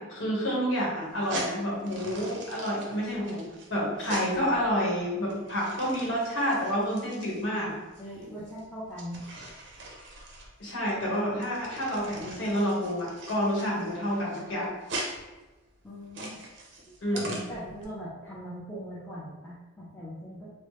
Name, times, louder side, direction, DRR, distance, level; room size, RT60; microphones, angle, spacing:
voice 1, 0.0-3.4 3.7-7.7 10.6-14.7 17.0-17.4, equal, 65° left, -5 dB, 1.1 m, -29 dB
sound 1, 1.1-17.8, right 2 dB, 60° right, 0.6 m, -42 dB
voice 2, 8.0-9.2 15.8-16.4 17.1-20.5, equal, 5° left, -10 dB, 0.5 m, -41 dB
3.1 x 2.1 x 3.0 m, 1.1 s
head